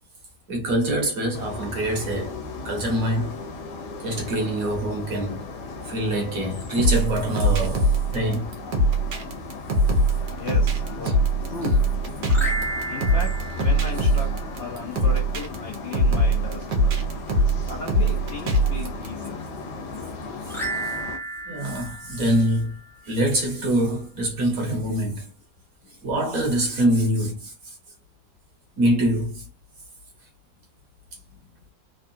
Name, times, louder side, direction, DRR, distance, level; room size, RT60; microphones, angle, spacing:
voice 1, 0.5-2.4 2.6-3.4 4.0-5.5 5.8-8.6 20.5-20.6 21.4-22.8 23.0-25.3 26.0-27.7 28.8-29.5, right 1 dB, 55° right, 1.4 m, -24 dB
sound 1, 1.3-21.2, left 3 dB, 80° left, 1.4 m, -36 dB
sound 2, 6.8-19.1, right 1 dB, 90° right, 1.4 m, -22 dB
voice 2, 10.4-11.2 11.5-11.8 12.9-17.2 17.7-19.4, left 3 dB, 55° left, 0.7 m, -36 dB
sound 3, 12.3-14.7 20.5-23.1, right 2 dB, 5° left, 0.5 m, -33 dB
3.5 x 2.3 x 2.6 m
omnidirectional pair, 1.8 m